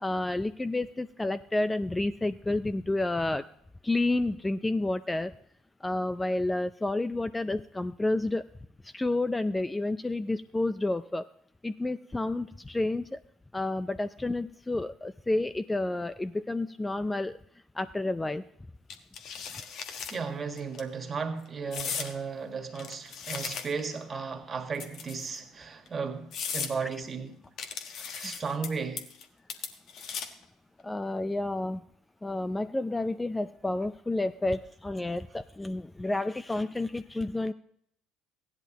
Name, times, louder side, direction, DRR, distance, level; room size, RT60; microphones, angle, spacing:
voice 1, 0.0-3.4 3.8-5.3 5.8-8.4 8.9-11.3 11.6-13.2 13.5-17.4 17.8-18.4 30.8-31.8 32.2-37.5, left 2 dB, 15° left, 0.4 m, -30 dB
sound 1, 18.9-20.2 20.6-20.8 21.7-22.1 22.7-23.9 24.7-25.4 25.9-26.0 26.3-26.7 27.6-28.7 29.0-29.2 29.5-30.4, left 6 dB, 55° left, 1.2 m, -37 dB
voice 2, 20.1-27.4 28.1-29.1, right 5 dB, 35° right, 1.7 m, -35 dB
16.0 x 10.5 x 3.0 m
hypercardioid pair, 60°, 0 cm